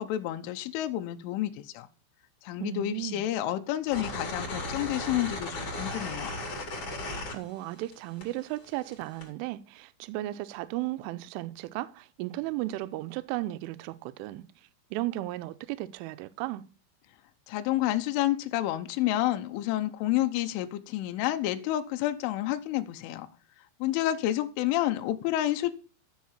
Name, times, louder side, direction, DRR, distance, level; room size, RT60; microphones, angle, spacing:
voice 1, 0.0-1.9 2.4-6.3 17.5-23.3 23.8-25.7, left 14 dB, 80° left, 3.3 m, -29 dB
voice 2, 2.6-3.3 7.0-14.5 14.9-16.6, right 16 dB, 80° right, 3.2 m, -35 dB
sound 1, 3.9-7.9 8.2-9.3, left 2 dB, 30° left, 4.3 m, -36 dB
13.5 x 6.7 x 7.3 m
omnidirectional pair, 5.7 m